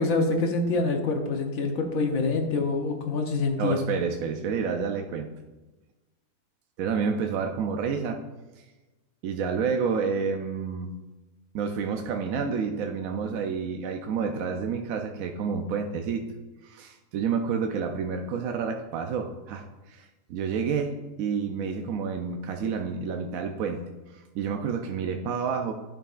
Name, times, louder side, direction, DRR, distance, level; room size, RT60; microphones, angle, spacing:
voice 1, 0.0-3.8, left 3 dB, 60° left, 3 dB, 1.2 m, -26 dB
voice 2, 3.6-5.3 6.8-8.2 8.6-8.7 9.2-10.9 11.5-16.2 16.6-23.8 24.1-25.7, right 6 dB, 70° right, 4 dB, 0.9 m, -29 dB
11.5 x 5.3 x 2.4 m, 1.1 s
omnidirectional pair, 1.7 m